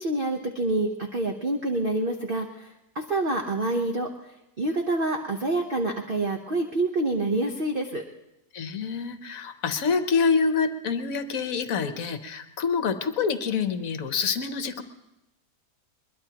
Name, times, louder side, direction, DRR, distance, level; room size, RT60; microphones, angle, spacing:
voice 1, 0.0-2.7 2.9-4.1 4.6-8.0, right 2 dB, 40° right, 3 dB, 0.9 m, -27 dB
voice 2, 8.5-14.8, left 5 dB, 60° left, 9 dB, 1.2 m, -26 dB
21.5 x 21.5 x 2.9 m, 0.93 s
omnidirectional pair, 1.7 m